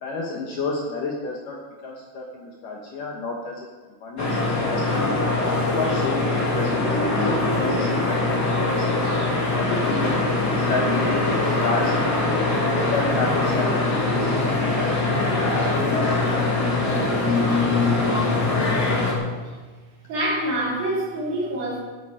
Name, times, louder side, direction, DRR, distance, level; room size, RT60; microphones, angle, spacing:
voice 1, 0.0-3.7 4.0-4.9 5.5-8.8 9.5-12.3 12.7-15.2 15.5-16.9 17.9-18.9, left 3 dB, 65° left, -1 dB, 2.3 m, -31 dB
sound 1, 4.2-19.1, left 2 dB, 30° left, 2.3 m, -22 dB
voice 2, 20.1-21.8, right 1 dB, 55° right, -5 dB, 4.8 m, -26 dB
16.5 x 8.8 x 5.0 m, 1.3 s
omnidirectional pair, 5.1 m